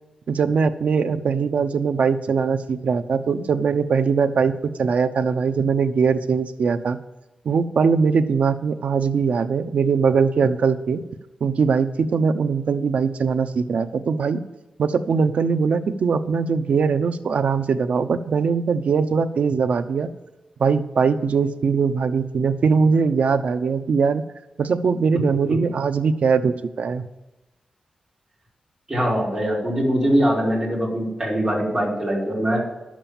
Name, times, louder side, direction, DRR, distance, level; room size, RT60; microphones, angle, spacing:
voice 1, 0.3-4.5 4.8-7.0 7.4-11.0 11.4-14.4 14.8-20.1 20.6-24.2 24.6-27.0, right 5 dB, 70° right, 10 dB, 0.7 m, -21 dB
voice 2, 28.9-32.6, equal, 15° right, -5 dB, 4.6 m, -22 dB
11.0 x 7.5 x 7.2 m, 1.0 s
wide cardioid pair, 130°, 2 cm